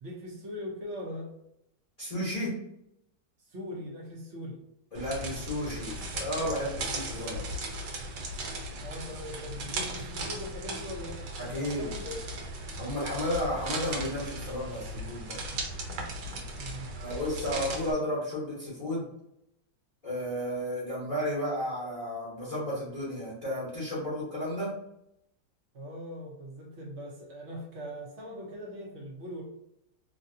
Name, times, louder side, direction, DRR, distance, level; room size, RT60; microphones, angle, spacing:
voice 1, 0.0-1.3 3.4-4.6 8.8-11.2 11.5-12.2 16.6-17.0 25.7-29.4, left 1 dB, 55° right, -2 dB, 0.8 m, -41 dB
voice 2, 2.0-2.6 4.9-7.4 11.4-11.9 12.8-15.4 16.9-19.0 20.0-24.7, left 1 dB, 30° left, -8 dB, 0.8 m, -33 dB
sound 1, 4.9-17.9, right 2 dB, 70° right, 1.2 m, -37 dB
3.2 x 2.6 x 2.6 m, 0.80 s
omnidirectional pair, 2.0 m